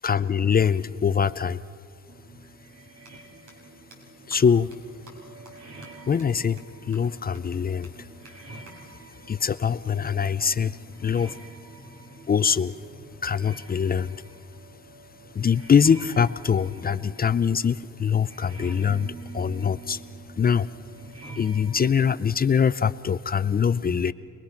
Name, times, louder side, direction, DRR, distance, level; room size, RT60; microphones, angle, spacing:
voice 1, 0.0-1.6 4.3-4.7 6.1-7.9 9.3-11.4 12.3-12.7 13.2-14.2 15.3-20.0 20.4-20.7 21.4-24.1, left 7 dB, 30° left, 15 dB, 0.6 m, -23 dB
sound 1, 2.1-21.9, right 2 dB, 60° right, 3.2 m, -46 dB
sound 2, 3.1-3.2 3.5-3.6 3.9-4.0 4.3-4.4 4.7-4.8 5.1-5.2 5.5-5.6 5.8-5.9 6.2-6.3 6.6-6.7 6.9-7.0 7.3-7.4 7.8-7.9 8.3-8.4 8.7-8.8 10.4-11.4, right 2 dB, 85° right, 5.3 m, -52 dB
27.0 x 20.5 x 5.9 m, 2.3 s
cardioid pair, 90°, 30 cm